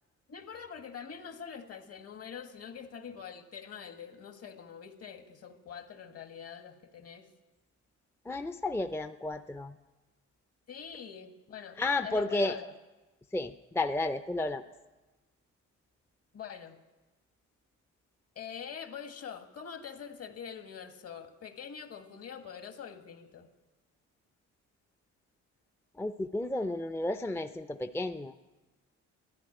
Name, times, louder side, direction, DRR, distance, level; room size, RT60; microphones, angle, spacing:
voice 1, 0.3-7.3 10.7-12.7 16.3-16.8 18.4-23.5, left 7 dB, 55° left, 7 dB, 1.7 m, -44 dB
voice 2, 8.3-9.7 11.8-12.5 13.3-14.6 26.0-28.3, left 2 dB, 10° left, 9 dB, 0.5 m, -32 dB
13.0 x 10.5 x 9.9 m, 1.2 s
cardioid pair, 90°, 30 cm